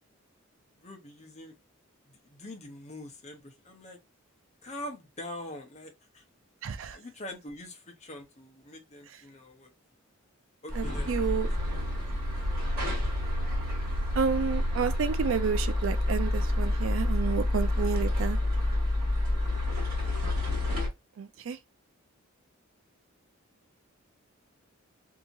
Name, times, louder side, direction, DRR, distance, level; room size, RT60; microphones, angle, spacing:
voice 1, 0.8-1.5 2.1-4.0 4.6-6.2 6.9-9.7 10.6-11.5 12.0-12.1 17.2-17.4, left 1 dB, 35° left, 0.8 m, -44 dB
voice 2, 6.6-7.0 10.8-11.5 14.2-18.4 21.2-21.6, right 6 dB, 65° right, 0.4 m, -30 dB
sound 1, 10.7-20.9, left 1 dB, 45° right, 1.6 m, -28 dB
2.8 x 2.7 x 2.6 m
head